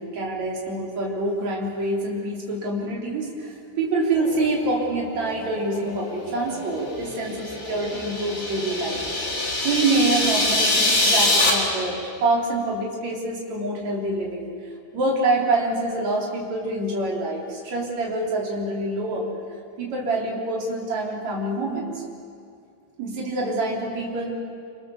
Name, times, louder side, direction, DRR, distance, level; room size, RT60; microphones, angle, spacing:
voice 1, 0.0-9.0 9.6-14.5 14.9-19.3 19.8-22.0 23.0-24.3, right 2 dB, 40° right, -2 dB, 4.7 m, -26 dB
sound 1, 4.1-11.9, left 3 dB, 80° left, 7.7 m, -38 dB
sound 2, 7.3-11.5, left 2 dB, 30° left, 3.9 m, -23 dB
28.0 x 26.0 x 7.2 m, 2.4 s
omnidirectional pair, 4.9 m